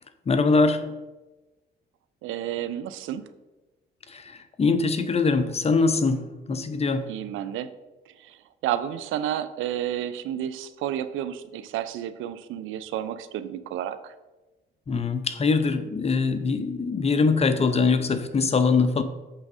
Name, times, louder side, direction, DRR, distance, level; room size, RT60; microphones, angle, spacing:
voice 1, 0.3-0.9 4.1-7.2 14.9-19.0, left 4 dB, 30° left, 10 dB, 0.7 m, -23 dB
voice 2, 2.2-3.3 7.1-7.7 8.2-14.1, right 11 dB, 85° right, 13 dB, 0.5 m, -31 dB
7.6 x 3.5 x 6.0 m, 1.1 s
cardioid pair, 90°, 20 cm